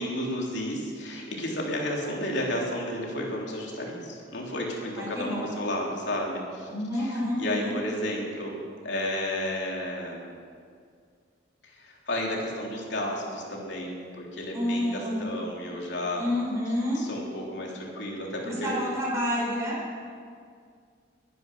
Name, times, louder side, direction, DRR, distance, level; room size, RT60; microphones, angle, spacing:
voice 1, 0.0-10.4 11.6-16.2 17.0-18.7, left 1 dB, 65° left, -2 dB, 3.5 m, -32 dB
voice 2, 5.0-5.4 6.7-7.7 14.5-15.3 16.2-17.0 18.4-20.0, left 1 dB, 15° right, -5 dB, 4.7 m, -29 dB
20.5 x 10.5 x 6.2 m, 2.2 s
head